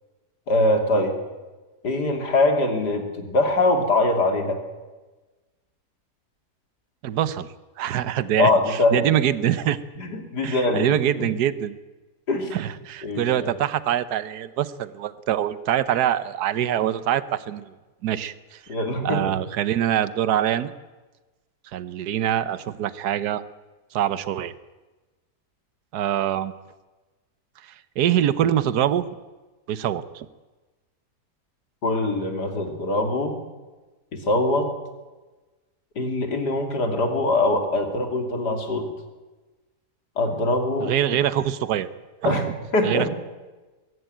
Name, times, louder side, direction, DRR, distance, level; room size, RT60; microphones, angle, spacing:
voice 1, 0.5-1.1 1.8-4.6 8.4-9.2 10.0-11.2 12.3-12.5 13.0-13.5 18.7-19.2 31.8-33.4 34.1-34.7 36.0-38.9 40.2-40.9 42.2-42.5 42.7-43.1, left 2 dB, 80° left, 4 dB, 3.4 m, -23 dB
voice 2, 7.0-7.5 7.8-9.8 10.4-11.7 12.5-17.7 18.0-18.6 19.0-20.7 21.7-23.4 23.9-24.5 25.9-26.5 27.6-29.0 29.7-30.3 40.8-41.9 42.2-42.4 42.8-43.1, right 11 dB, 75° right, 15 dB, 1.4 m, -24 dB
22.0 x 16.0 x 9.1 m, 1.2 s
omnidirectional pair, 1.7 m